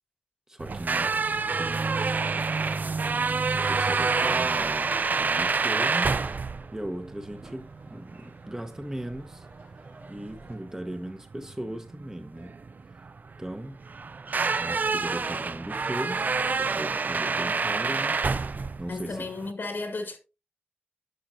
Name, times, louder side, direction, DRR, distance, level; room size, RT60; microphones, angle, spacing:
voice 1, 0.5-1.1 1.6-2.2 3.5-6.1 6.7-9.5 10.1-12.5 13.4-13.8 14.6-18.2 18.5-19.3, right 1 dB, 15° right, 0.8 m, -38 dB
sound 1, 0.6-19.5, right 4 dB, 50° right, 0.3 m, -28 dB
Crowd / Fireworks, 2.3-10.5, right 2 dB, 70° right, 2.7 m, -50 dB
voice 2, 18.9-20.2, left 3 dB, 70° left, 1.6 m, -34 dB
10.5 x 6.3 x 2.5 m
wide cardioid pair, 115°, 4 cm